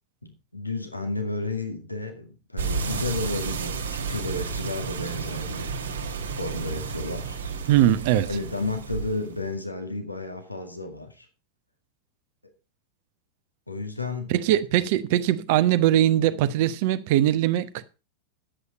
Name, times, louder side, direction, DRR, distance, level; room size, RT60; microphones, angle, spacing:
voice 1, 0.2-5.8 6.4-7.4 8.3-11.3 13.7-14.4 14.8-14.9, left 2 dB, 85° left, 2.0 m, -32 dB
sound 1, 2.6-9.5, right 5 dB, 70° right, 1.8 m, -32 dB
voice 2, 7.7-8.3 14.3-17.8, right 12 dB, 50° right, 0.9 m, -21 dB
10.5 x 8.2 x 5.2 m
figure-of-eight pair, 90°, 0 cm